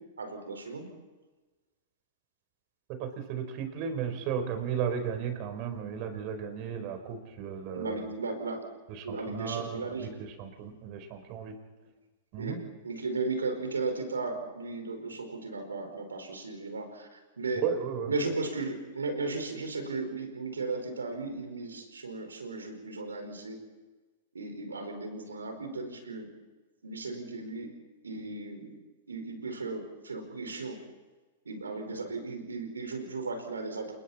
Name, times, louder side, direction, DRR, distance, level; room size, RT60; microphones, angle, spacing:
voice 1, 0.2-0.9 7.7-8.6 9.0-10.2 12.4-17.6 18.1-23.6 24.3-26.3 26.8-27.7 28.0-28.7 29.1-30.8 31.4-33.9, right 3 dB, 90° right, 6 dB, 4.9 m, -36 dB
voice 2, 2.9-8.1 8.9-11.6 12.3-12.6 17.6-18.1, right 7 dB, 45° right, 7 dB, 4.4 m, -35 dB
29.0 x 21.5 x 4.3 m, 1.2 s
hypercardioid pair, 110°, 0 cm